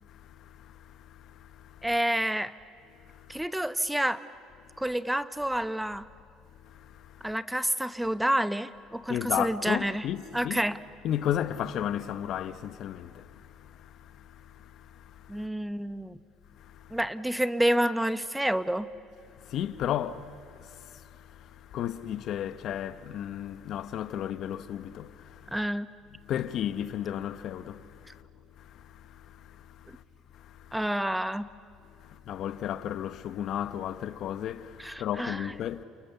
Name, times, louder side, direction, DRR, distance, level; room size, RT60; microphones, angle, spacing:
voice 1, 0.0-1.9 3.0-3.4 6.6-7.3 9.1-10.6 11.0-15.5 16.6-17.0 19.3-25.6 26.3-28.2 28.6-30.0 30.3-30.8 32.0-35.8, left 10 dB, 60° left, 1.0 m, -35 dB
voice 2, 1.8-2.5 3.3-4.2 4.8-6.1 7.2-10.0 10.3-10.8 15.3-16.2 16.9-18.9 25.5-25.9 30.7-31.4 34.8-35.5, right 1 dB, 5° right, 1.0 m, -28 dB
30.0 x 28.0 x 7.0 m
cardioid pair, 110°, 0 cm